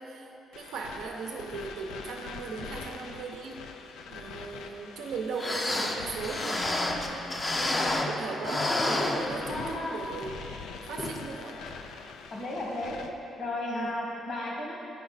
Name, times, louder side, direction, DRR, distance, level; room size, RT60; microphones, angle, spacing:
voice 1, 0.0-3.6 4.1-10.4 10.8-11.6 13.7-13.9, right 4 dB, 85° right, 0 dB, 0.7 m, -38 dB
sound 1, 0.5-13.1, left 5 dB, 85° left, 0.4 m, -44 dB
sound 2, 5.1-5.2 5.3-8.2 8.4-9.8 10.2-10.3 11.0-11.2 11.7-11.8, left 2 dB, 25° left, 0.6 m, -30 dB
voice 2, 7.6-8.0 8.3-9.1 9.5-10.0 12.3-13.0 13.4-14.8, left 2 dB, 60° left, -3 dB, 1.7 m, -34 dB
8.5 x 5.0 x 4.1 m, 2.9 s
cardioid pair, 90°, 0 cm